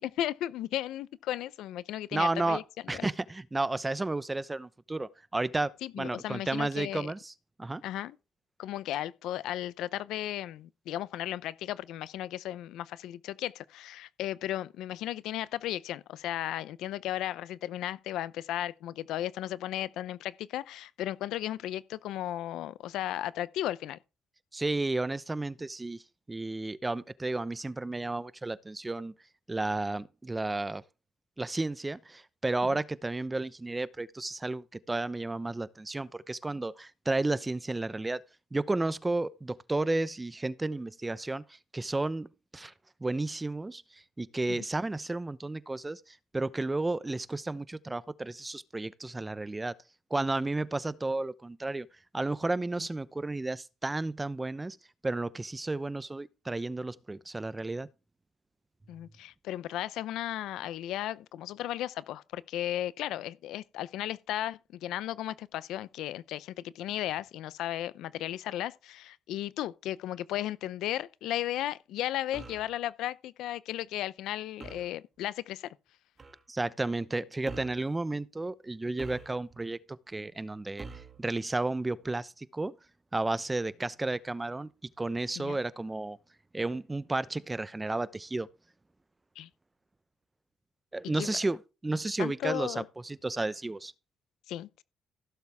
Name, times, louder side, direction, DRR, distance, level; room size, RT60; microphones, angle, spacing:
voice 1, 0.0-2.6 2.9-3.1 5.8-7.1 7.8-8.2 8.6-24.0 44.5-44.6 58.9-75.7 85.4-85.6 89.4-89.5 91.2-91.3 92.2-92.9 94.5-94.8, left 13 dB, 85° left, 0.6 m, -35 dB
voice 2, 2.1-2.6 2.9-7.3 7.6-7.8 24.5-26.0 26.3-29.1 29.5-30.8 31.4-38.2 38.5-42.7 43.0-49.7 50.1-51.9 52.1-54.8 55.0-57.9 76.5-80.9 81.2-82.7 83.1-84.7 85.0-86.2 86.5-88.5 90.9-93.9, right 2 dB, 20° right, 0.8 m, -32 dB
sound 1, 72.3-72.7 74.6-74.9 76.2-76.4 77.4-77.9 79.0-79.6 80.8-81.2, right 4 dB, 35° right, 2.3 m, -45 dB
16.0 x 7.3 x 3.5 m
cardioid pair, 80°, 0 cm